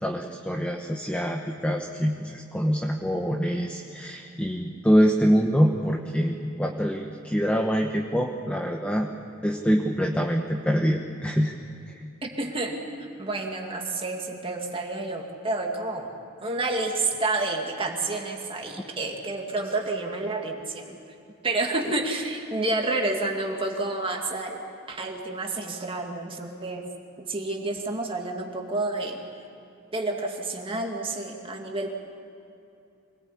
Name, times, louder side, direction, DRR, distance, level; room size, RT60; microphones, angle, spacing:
voice 1, 0.0-9.1 9.4-11.5, equal, 5° left, 2 dB, 1.0 m, -25 dB
voice 2, 12.2-16.1 16.4-21.0 21.4-24.6 24.9-26.9 27.2-29.2 29.9-31.9, right 2 dB, 25° right, 1 dB, 2.2 m, -29 dB
25.0 x 18.5 x 8.6 m, 2.7 s
head